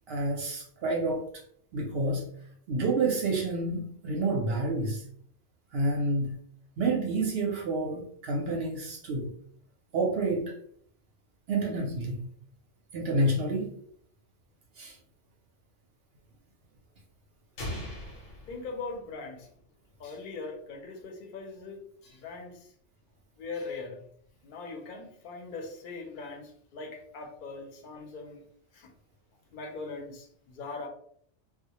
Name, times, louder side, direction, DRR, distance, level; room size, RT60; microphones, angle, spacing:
voice 1, 0.1-1.3 1.7-2.3 2.7-5.0 5.7-6.4 6.8-9.3 9.9-10.5 11.5-12.3 12.9-13.7 14.8-14.9, right 2 dB, 65° right, 0.7 m, -29 dB
sound 1, 17.6-19.5, left 1 dB, 85° left, 0.9 m, -40 dB
voice 2, 18.5-19.5 20.0-22.7 23.4-24.0 24.4-28.5 28.7-28.9 29.5-30.9, left 3 dB, 55° left, 0.6 m, -41 dB
2.1 x 2.0 x 2.8 m
omnidirectional pair, 1.2 m